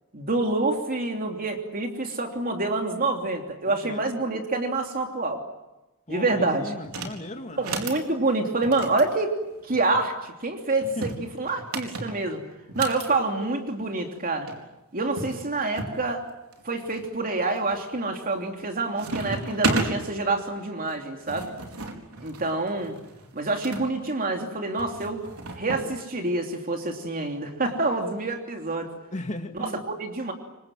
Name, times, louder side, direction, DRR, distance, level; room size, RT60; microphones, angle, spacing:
voice 1, 0.1-5.4 6.1-6.7 7.6-12.4 12.7-14.5 14.9-16.2 16.6-21.5 22.2-23.0 23.3-25.2 25.6-28.9 29.5-30.3, right 2 dB, 40° right, 3 dB, 3.1 m, -27 dB
voice 2, 3.6-4.0 6.1-7.6 11.0-11.1 29.1-29.8, left 1 dB, 35° left, 5 dB, 2.2 m, -36 dB
sound 1, 6.8-7.2 7.5-8.0 8.6-10.0 10.8-13.1 14.2-14.3 14.5-14.6 15.2-16.0 16.5-17.0 17.6-17.9 18.3-18.7 19.0-19.9 20.9-23.8 24.8-25.9, right 2 dB, 75° right, 4.5 m, -33 dB
28.5 x 24.5 x 7.4 m, 1.0 s
head